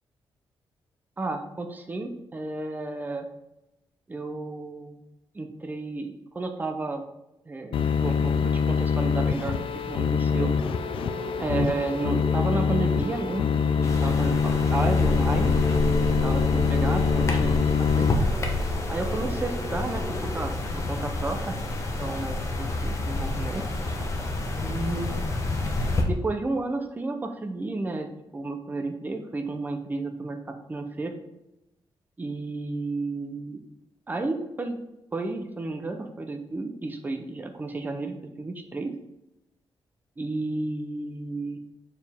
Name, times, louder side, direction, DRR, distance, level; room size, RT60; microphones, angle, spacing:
voice 1, 1.2-3.3 4.1-5.0 5.3-7.0 7.5-10.5 11.4-13.5 13.8-15.6 15.8-18.1 18.9-21.6 22.0-23.7 24.6-25.1 26.1-28.1 28.3-31.1 32.2-33.6 34.1-34.8 35.1-38.9 40.2-41.6, right 3 dB, 20° right, 5 dB, 0.7 m, -32 dB
sound 1, 7.7-18.1, left 6 dB, 70° left, 0.4 m, -24 dB
sound 2, 10.3-20.5, equal, 15° left, 2.0 m, -37 dB
sound 3, 13.8-26.0, left 2 dB, 30° left, 0.9 m, -28 dB
6.8 x 4.5 x 3.5 m, 0.90 s
wide cardioid pair, 145°, 9 cm